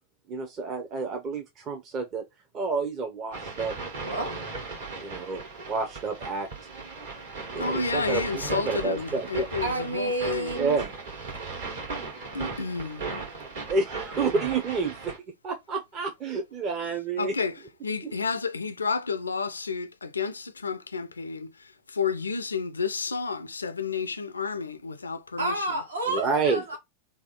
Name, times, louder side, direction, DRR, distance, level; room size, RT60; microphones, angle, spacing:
voice 1, 0.3-2.2 2.5-3.7 5.0-5.4 5.7-6.5 7.5-9.5 10.5-10.9 13.7-15.1 15.4-17.5 18.0-18.1 26.1-26.6, right 4 dB, 35° right, 0.6 m, -29 dB
sound 1, 3.3-15.2, right 3 dB, 60° right, 1.4 m, -37 dB
voice 2, 4.0-4.4 9.6-10.8 25.4-26.8, right 2 dB, 80° right, 1.3 m, -30 dB
voice 3, 7.6-10.5 12.3-13.1 17.2-17.5 17.8-21.5 21.9-25.5, left 5 dB, 75° left, 0.4 m, -30 dB
3.4 x 2.3 x 4.2 m
figure-of-eight pair, 90°, 0 cm